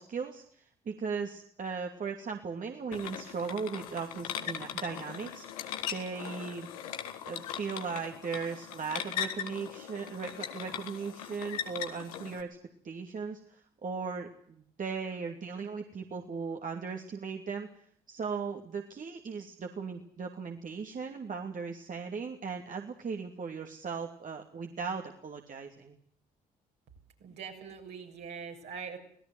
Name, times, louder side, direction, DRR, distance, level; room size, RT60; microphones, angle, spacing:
voice 1, 0.0-6.7 7.2-12.6 12.8-17.7 18.1-25.9, right 5 dB, 50° right, 3 dB, 2.7 m, -38 dB
sound 1, 2.9-12.4, left 9 dB, 90° left, 1.7 m, -39 dB
voice 2, 27.2-29.0, right 6 dB, 70° right, 1 dB, 6.8 m, -42 dB
26.0 x 18.0 x 7.9 m, 0.64 s
hypercardioid pair, 50°, 18 cm